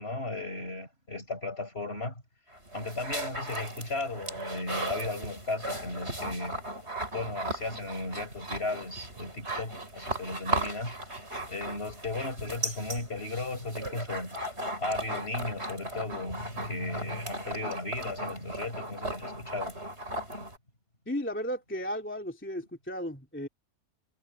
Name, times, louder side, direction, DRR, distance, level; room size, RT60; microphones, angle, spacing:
voice 1, 0.0-2.2 2.7-6.6 7.1-10.9 11.5-14.4 14.8-19.7, left 2 dB, 35° left, 5.6 m, -35 dB
sound 1, 2.5-20.6, right 1 dB, 40° right, 7.2 m, -37 dB
voice 2, 21.1-23.5, equal, 5° left, 2.6 m, -34 dB
omnidirectional pair, 1.7 m